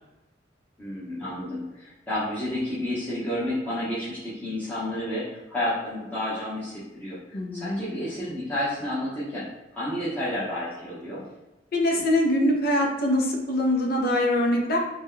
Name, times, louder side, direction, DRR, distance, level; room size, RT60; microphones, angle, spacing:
voice 1, 0.8-7.2 7.5-9.5 9.7-11.2, left 1 dB, 10° left, -11 dB, 0.8 m, -30 dB
voice 2, 7.3-7.8 11.7-14.8, left 1 dB, 55° left, 1 dB, 0.6 m, -23 dB
2.9 x 2.2 x 3.5 m, 1.0 s
head